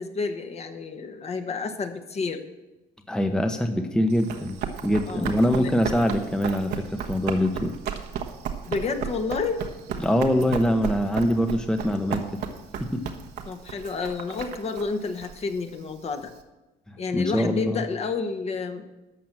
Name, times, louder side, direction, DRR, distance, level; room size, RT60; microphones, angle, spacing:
voice 1, 0.0-2.4 5.1-5.7 8.6-9.6 13.5-16.3 17.0-18.9, left 4 dB, 40° left, 7 dB, 1.1 m, -30 dB
voice 2, 3.1-7.8 10.0-12.4 12.8-13.0 16.9-17.8, equal, 5° left, 6 dB, 0.8 m, -24 dB
Run, 4.1-16.4, right 7 dB, 80° right, 1.2 m, -35 dB
12.0 x 6.0 x 7.5 m, 1.0 s
cardioid pair, 110°, 17 cm